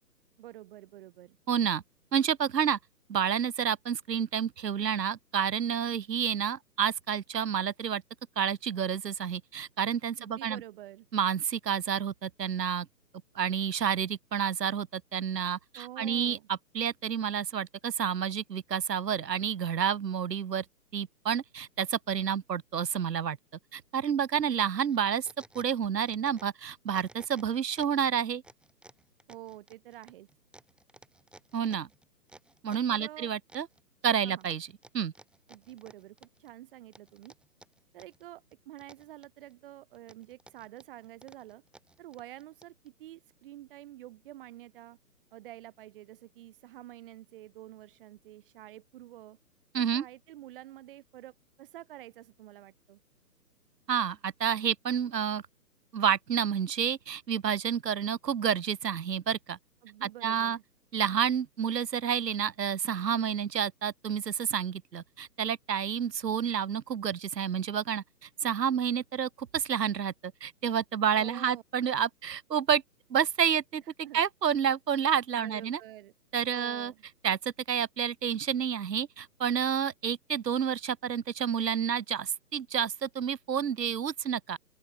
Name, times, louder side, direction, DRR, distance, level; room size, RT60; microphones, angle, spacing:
voice 1, 0.4-1.4 10.2-11.1 15.7-16.5 29.3-30.3 32.9-33.3 34.2-34.5 35.5-37.3 37.9-41.6 42.0-45.0 45.3-49.4 49.8-53.0 59.8-60.6 71.2-71.6 73.8-74.2 75.3-76.1 76.5-77.0, right 14 dB, 35° right, 1.9 m, -48 dB
voice 2, 1.5-1.8 2.1-2.8 3.1-8.0 8.4-10.6 11.1-12.9 13.3-20.6 20.9-23.4 23.7-25.3 25.5-28.4 31.5-31.9 32.6-33.7 34.0-34.7 34.9-35.1 49.7-50.0 53.9-55.4 55.9-59.6 60.0-60.6 60.9-72.8 73.1-73.8 74.1-75.8 76.3-76.9 77.2-84.6, right 8 dB, 80° right, 1.1 m, -29 dB
sound 1, 24.9-26.6 26.9-28.0 28.4-33.0 33.5-34.1 34.4-36.5 36.9-38.2 38.5-39.5 39.9-42.9, right 2 dB, ahead, 2.0 m, -56 dB
open air
hypercardioid pair, 145°, 49 cm